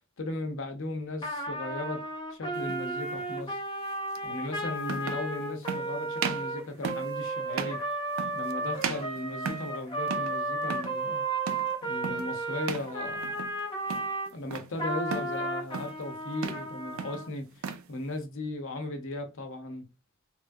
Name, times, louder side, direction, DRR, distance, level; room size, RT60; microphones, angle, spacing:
voice 1, 0.2-2.0 2.3-3.6 4.2-7.8 8.3-11.2 11.8-13.5 14.3-19.9, left 2 dB, 65° left, 0.7 m, -37 dB
Trumpet, 1.2-14.3 14.8-17.3, right 2 dB, 25° left, 0.6 m, -33 dB
sound 1, 2.6-2.8 4.1-4.2 4.8-5.3 5.7-5.9 6.2-6.5 6.8-7.1 7.5-7.8 8.2-8.5 8.8-9.8 10.1-10.4 10.6-11.0 11.5-11.7 12.0-12.3 12.6-12.9 13.2-13.6 13.9-14.7 15.1-15.4 15.7-16.0 16.3-16.7 17.0-17.9, right 6 dB, 75° right, 0.4 m, -35 dB
3.0 x 2.3 x 2.6 m
head